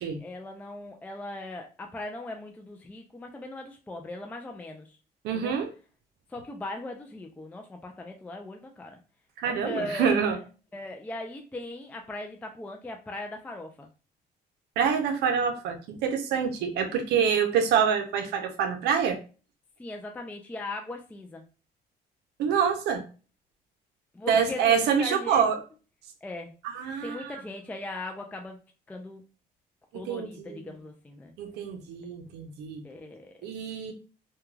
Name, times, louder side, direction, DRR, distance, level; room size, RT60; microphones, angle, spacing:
voice 1, 0.2-5.0 5.3-5.6 6.3-9.0 9.4-10.4 10.7-13.9 17.1-17.5 19.8-21.4 24.1-25.5 26.2-26.5 27.0-28.6 28.9-29.2 29.9-31.3 32.8-33.5, left 2 dB, 10° left, 3 dB, 0.3 m, -39 dB
voice 2, 5.2-5.7 9.4-10.4 14.8-19.2 22.4-23.0 24.3-25.6 26.6-27.4 29.9-30.6 31.4-32.8 33.4-33.9, right 7 dB, 80° right, 6 dB, 0.5 m, -26 dB
2.3 x 2.2 x 3.1 m, 0.35 s
cardioid pair, 110°, 17 cm